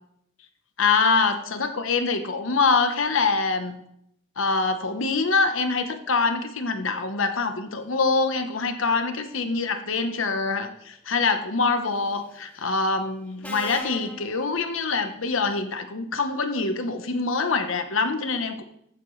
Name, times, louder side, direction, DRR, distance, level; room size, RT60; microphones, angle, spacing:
voice 1, 0.8-3.8 4.4-18.6, left 4 dB, 80° left, 8 dB, 1.0 m, -24 dB
Subway metro underground, 11.9-12.3 13.4-15.1, left 1 dB, 5° left, 0.7 m, -41 dB
15.0 x 7.6 x 3.2 m, 0.75 s
head